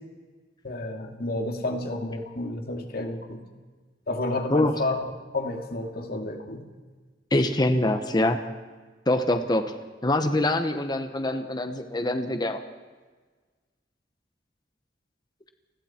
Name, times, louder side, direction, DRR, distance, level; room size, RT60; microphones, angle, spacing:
voice 1, 0.6-3.4 4.1-5.0 5.3-6.7, left 2 dB, 60° left, 3 dB, 2.5 m, -30 dB
voice 2, 7.3-8.4 9.1-9.7 10.0-12.6, left 1 dB, 25° left, 7 dB, 1.1 m, -24 dB
29.0 x 20.0 x 4.5 m, 1.4 s
head